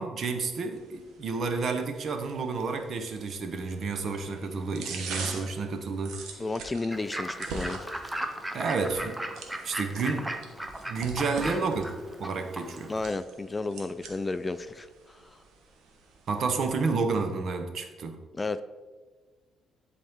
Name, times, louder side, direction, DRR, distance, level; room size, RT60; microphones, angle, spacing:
voice 1, 0.0-6.4 8.5-9.2 9.6-10.3 10.9-11.9 12.2-12.9 16.3-18.2, right 4 dB, 55° right, 6 dB, 0.9 m, -30 dB
sound 1, 0.7-16.7, right 4 dB, 85° right, 1.1 m, -44 dB
voice 2, 6.4-7.9 12.9-15.2 18.3-18.6, left 3 dB, 20° left, 12 dB, 0.3 m, -32 dB
Fowl / Bird, 6.9-13.1, right 1 dB, 10° right, 0.7 m, -37 dB
10.5 x 4.3 x 3.6 m, 1.3 s
cardioid pair, 90°, 0 cm